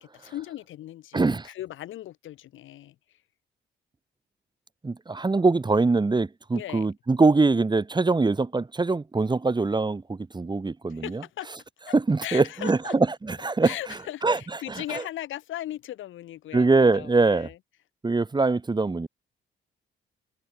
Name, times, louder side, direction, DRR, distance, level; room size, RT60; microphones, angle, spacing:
voice 1, 0.0-3.0 6.5-6.9 10.9-11.5 11.9-12.0 12.2-12.9 13.6-17.6, left 13 dB, 80° left, 2.3 m, -38 dB
voice 2, 1.1-1.5 4.8-11.2 11.9-13.7 14.2-14.4 14.7-15.0 16.5-17.5 18.0-19.1, right 3 dB, 20° right, 2.2 m, -23 dB
cardioid pair, 90°, 20 cm